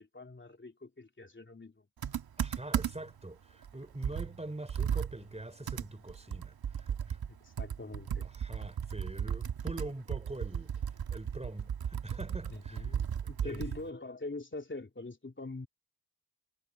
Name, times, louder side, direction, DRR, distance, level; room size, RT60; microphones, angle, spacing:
voice 1, 0.0-1.9 7.3-8.3 12.5-15.7, left 2 dB, 30° left, 3.4 m, -44 dB
Computer keyboard, 2.0-3.2 3.6-3.7 4.0-13.9, right 8 dB, 65° right, 1.8 m, -35 dB
voice 2, 2.4-7.2 8.2-10.7 11.1-13.0 13.4-13.6, right 1 dB, 15° right, 4.0 m, -44 dB
supercardioid pair, 40°, 39 cm